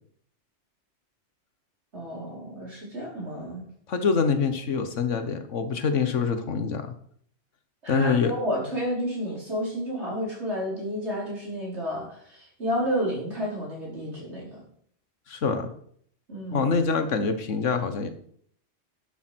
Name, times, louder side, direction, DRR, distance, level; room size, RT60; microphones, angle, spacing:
voice 1, 1.9-3.7 7.8-14.6 16.3-16.7, equal, 65° right, -4 dB, 5.2 m, -31 dB
voice 2, 3.9-6.9 7.9-8.3 15.3-15.7 16.5-18.1, left 5 dB, 85° left, 8 dB, 1.6 m, -25 dB
11.0 x 7.1 x 6.2 m, 0.63 s
omnidirectional pair, 1.2 m